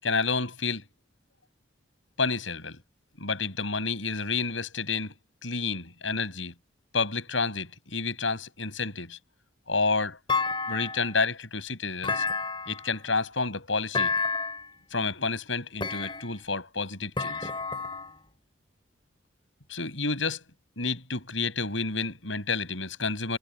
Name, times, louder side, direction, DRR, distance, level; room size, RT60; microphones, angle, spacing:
voice 1, 0.0-0.8 2.2-2.8 3.2-5.1 5.4-6.5 6.9-9.2 9.7-10.2 10.7-12.2 12.7-14.1 14.9-17.4 19.7-20.4 20.8-23.4, left 4 dB, 80° left, 7.1 m, -30 dB
Thump thud, 10.3-11.2 12.0-13.0 13.9-14.7 15.8-16.5 17.2-18.2, left 4 dB, 25° left, 3.0 m, -30 dB
head